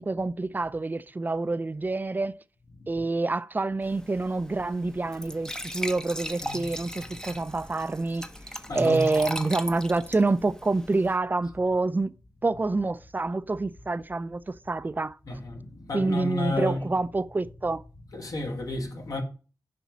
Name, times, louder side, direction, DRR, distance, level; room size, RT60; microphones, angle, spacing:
voice 1, 0.0-2.3 2.9-8.2 8.7-12.1 12.4-15.2 15.9-17.8, right 3 dB, 25° right, 0.5 m, -27 dB
Glass / Trickle dribble / Fill (with liquid), 3.8-11.2, equal, 10° left, 0.7 m, -39 dB
voice 2, 8.7-9.1 15.3-17.0 18.1-19.2, left 2 dB, 60° left, 1.9 m, -32 dB
7.1 x 5.2 x 7.2 m
wide cardioid pair, 100°, 7 cm